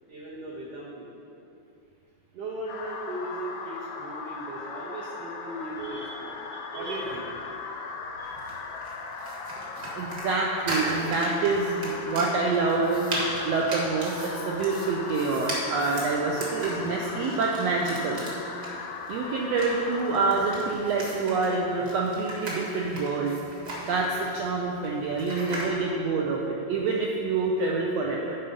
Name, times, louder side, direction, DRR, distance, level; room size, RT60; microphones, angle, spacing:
voice 1, 0.1-1.1 2.3-6.3 6.7-7.3 16.2-16.5, right 1 dB, 65° right, -6 dB, 1.7 m, -38 dB
sound 1, 2.7-20.7, left 4 dB, 80° left, 1.4 m, -38 dB
voice 2, 6.7-7.0 9.9-13.1 13.4-18.2 19.1-23.3 23.9-28.4, right 3 dB, 80° right, -2 dB, 1.5 m, -27 dB
sound 2, 8.2-25.7, right 1 dB, 45° right, 1.6 m, -37 dB
11.0 x 4.2 x 5.2 m, 2.7 s
omnidirectional pair, 3.6 m